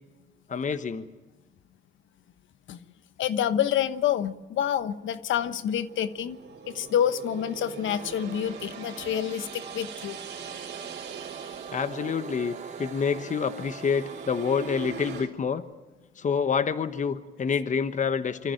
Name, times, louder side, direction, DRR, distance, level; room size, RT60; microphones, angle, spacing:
voice 1, 0.5-1.1 11.7-15.6 16.2-18.5, left 6 dB, 40° left, 11 dB, 1.2 m, -27 dB
voice 2, 3.2-6.4 6.7-10.2, left 10 dB, 75° left, 13 dB, 1.1 m, -28 dB
sound 1, 5.2-15.3, right 6 dB, 60° right, 3.9 m, -42 dB
sound 2, 7.8-15.2, right 6 dB, 40° right, 1.3 m, -43 dB
25.0 x 14.0 x 9.1 m, 1.2 s
cardioid pair, 90°, 20 cm